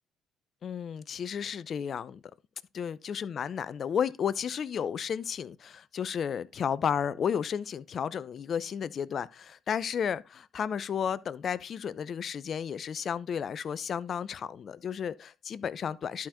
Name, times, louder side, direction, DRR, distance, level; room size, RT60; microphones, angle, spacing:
voice 1, 0.6-2.2 2.7-16.3, left 7 dB, 55° left, 0.6 m, -33 dB
11.5 x 4.4 x 3.8 m
supercardioid pair, 70°, 0 cm